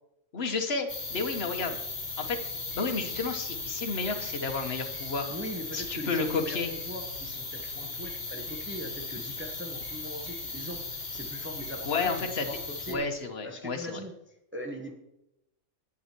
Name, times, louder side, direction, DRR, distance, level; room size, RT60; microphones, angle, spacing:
voice 1, 0.3-1.8 2.2-2.4 2.7-5.3 5.7-6.7 11.8-12.4 12.9-14.0, left 4 dB, 55° left, 6 dB, 1.4 m, -31 dB
sound 1, 0.9-13.0, left 4 dB, 35° left, 1.5 m, -37 dB
sound 2, 1.9-13.3, right 3 dB, 55° right, 1.7 m, -51 dB
voice 2, 5.3-13.0 13.4-14.9, equal, 10° right, 2 dB, 1.1 m, -41 dB
11.0 x 8.4 x 4.5 m, 0.86 s
omnidirectional pair, 1.3 m